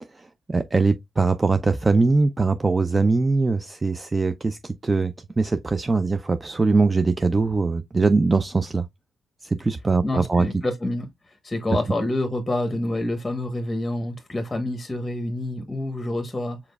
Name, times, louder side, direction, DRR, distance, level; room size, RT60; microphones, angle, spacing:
voice 1, 0.1-8.9 9.4-10.5, right 3 dB, 25° right, 0.4 m, -22 dB
voice 2, 10.0-16.6, left 1 dB, 15° left, 0.9 m, -27 dB
5.0 x 4.1 x 2.2 m
cardioid pair, 90°, 0 cm